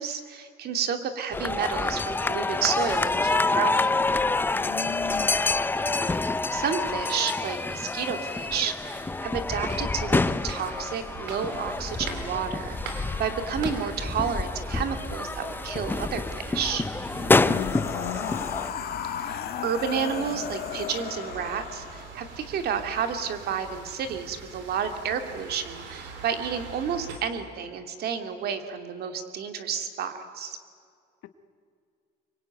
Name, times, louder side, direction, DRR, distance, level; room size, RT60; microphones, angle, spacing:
voice 1, 0.0-3.9 6.2-16.8 19.2-30.6, right 7 dB, 60° right, 7 dB, 2.5 m, -31 dB
sound 1, 1.3-18.7, left 3 dB, 10° left, 0.6 m, -27 dB
voice 2, 4.5-5.5 17.5-18.4, left 12 dB, 85° left, 10 dB, 1.2 m, -39 dB
sound 2, 8.8-27.2, right 5 dB, 85° right, 3.9 m, -43 dB
sound 3, 17.0-22.2, left 9 dB, 60° left, 2.0 m, -34 dB
25.5 x 23.5 x 9.2 m, 2.2 s
cardioid pair, 135°, 18 cm